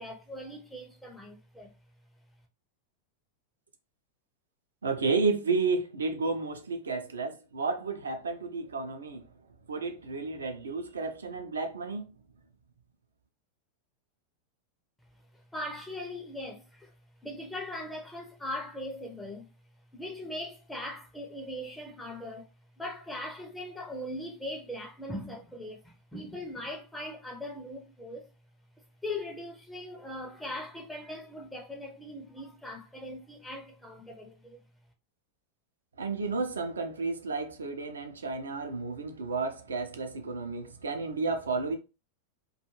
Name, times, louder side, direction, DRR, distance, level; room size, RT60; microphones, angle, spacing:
voice 1, 0.0-1.7 15.3-16.9 17.2-19.5 19.9-22.5 22.8-28.3 29.0-34.6, left 1 dB, 5° left, 0.5 m, -40 dB
voice 2, 4.8-9.2 9.7-12.1 36.0-41.8, right 4 dB, 70° right, 0.5 m, -32 dB
2.5 x 2.2 x 2.9 m
figure-of-eight pair, 90°, 0 cm